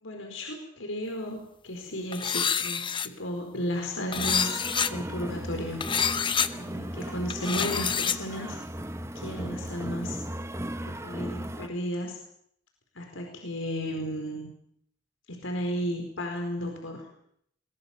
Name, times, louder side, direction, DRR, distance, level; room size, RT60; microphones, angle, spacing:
voice 1, 0.0-4.5 4.8-5.8 6.5-8.6 9.1-10.2 10.8-12.2 12.9-14.5 15.3-17.1, equal, 80° left, 2 dB, 4.7 m, -34 dB
sound 1, 2.1-3.1 4.1-4.9 5.8-6.5 7.3-8.2, left 7 dB, 25° left, 0.8 m, -27 dB
sound 2, 4.1-11.7, right 1 dB, 15° right, 1.2 m, -36 dB
22.0 x 21.0 x 7.3 m, 0.68 s
head